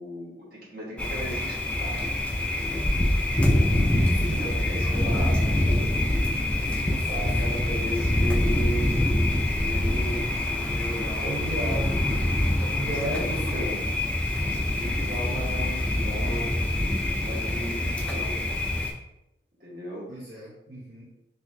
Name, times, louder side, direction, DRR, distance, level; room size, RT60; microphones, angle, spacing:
voice 1, 0.0-2.2 4.1-5.9 6.6-8.9 9.4-11.5 12.6-13.8 14.4-16.6 17.2-18.6 19.6-20.1, equal, 50° right, -6 dB, 1.3 m, -36 dB
Thunder, 1.0-18.9, left 1 dB, 5° left, 0.3 m, -25 dB
voice 2, 4.1-4.4 6.7-7.6 11.2-12.1 12.7-13.7 15.0-15.5 20.1-21.0, right 1 dB, 70° right, -7 dB, 0.8 m, -35 dB
3.8 x 2.7 x 2.7 m, 0.90 s
head